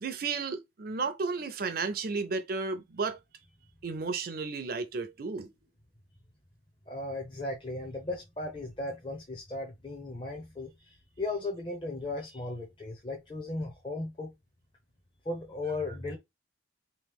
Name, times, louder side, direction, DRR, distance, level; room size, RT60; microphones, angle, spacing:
voice 1, 0.0-3.2 3.8-5.5, right 4 dB, 50° right, 0.5 m, -33 dB
voice 2, 6.9-14.3 15.2-16.2, left 2 dB, 25° left, 0.7 m, -36 dB
3.2 x 3.0 x 3.5 m
head